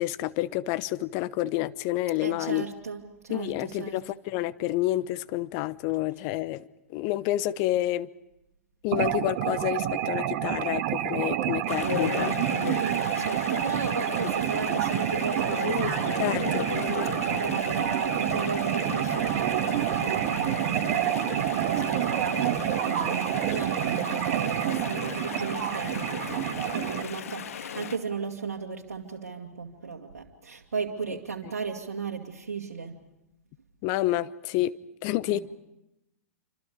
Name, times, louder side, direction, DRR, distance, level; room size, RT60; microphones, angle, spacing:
voice 1, 0.0-2.6 3.3-6.6 6.9-8.1 8.8-12.7 14.7-14.8 16.2-16.6 33.8-34.7 35.0-35.4, left 15 dB, 40° left, 1.0 m, -29 dB
voice 2, 2.2-4.0 12.6-16.7 17.0-33.0 35.3-35.4, right 5 dB, 75° right, 2.2 m, -36 dB
sound 1, 8.9-27.0, right 12 dB, 45° right, 1.7 m, -28 dB
Chatter / Stream, 11.7-28.0, left 8 dB, 70° left, 1.7 m, -36 dB
28.0 x 26.0 x 5.1 m
figure-of-eight pair, 100°, 8 cm